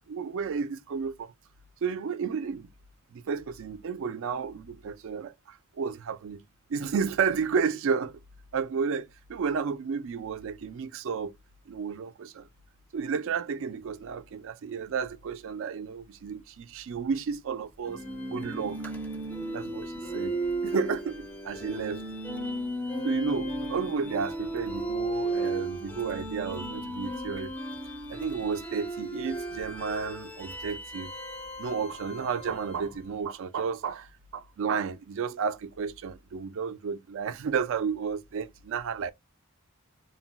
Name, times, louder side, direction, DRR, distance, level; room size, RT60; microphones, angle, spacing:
voice 1, 0.1-1.3 1.8-2.7 3.1-6.4 6.7-8.2 8.5-11.3 11.7-12.5 12.9-18.0 18.3-18.8 19.5-20.4 20.6-22.0 23.0-27.5 28.1-31.1 31.6-39.1, right 6 dB, 65° right, 0.4 m, -32 dB
sound 1, 17.9-33.0, right 2 dB, 10° left, 0.4 m, -35 dB
2.2 x 2.2 x 3.7 m
head